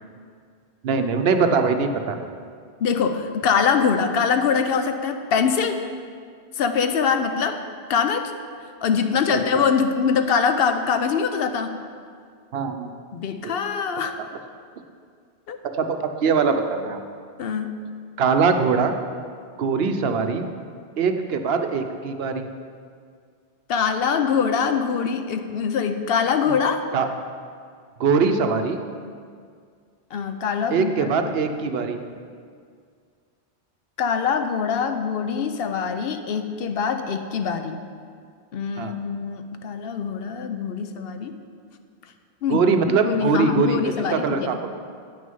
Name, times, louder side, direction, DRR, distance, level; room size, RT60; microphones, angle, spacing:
voice 1, 0.8-2.2 9.5-9.7 12.5-12.9 13.4-13.5 15.8-17.0 18.2-19.0 19.6-20.5 21.0-22.5 26.5-26.6 26.9-27.1 28.0-28.8 30.7-32.0 38.8-39.0 42.5-44.6, right 5 dB, 70° right, 7 dB, 0.9 m, -22 dB
voice 2, 2.8-5.8 6.6-7.6 7.9-8.3 8.8-11.8 13.1-14.2 15.5-15.6 17.4-17.8 23.7-26.8 30.1-31.4 34.0-37.8 38.5-41.4 42.4-44.7, left 6 dB, 70° left, 8 dB, 0.8 m, -23 dB
8.8 x 6.3 x 5.4 m, 2.1 s
omnidirectional pair, 1.1 m